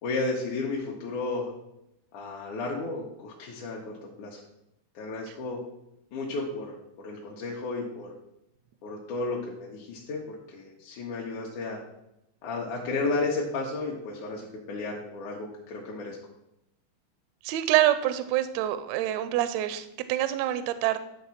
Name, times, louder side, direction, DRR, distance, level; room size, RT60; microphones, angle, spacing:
voice 1, 0.0-1.5 2.1-4.4 5.0-5.6 6.1-6.8 7.0-8.1 8.8-11.8 12.4-16.2, left 3 dB, 75° left, -2 dB, 2.4 m, -33 dB
voice 2, 17.4-21.0, right 13 dB, 80° right, 12 dB, 1.5 m, -26 dB
10.5 x 3.6 x 5.7 m, 0.85 s
omnidirectional pair, 3.6 m